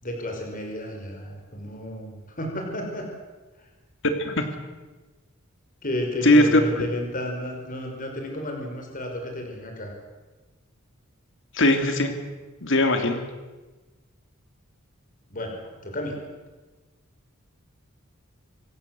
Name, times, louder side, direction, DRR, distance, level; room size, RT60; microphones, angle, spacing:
voice 1, 0.0-3.1 5.8-9.9 15.3-16.2, left 1 dB, 40° left, 2 dB, 5.7 m, -32 dB
voice 2, 6.2-6.6 11.5-12.1 12.6-13.2, left 1 dB, 65° left, 6 dB, 3.2 m, -19 dB
26.5 x 17.0 x 7.9 m, 1.2 s
head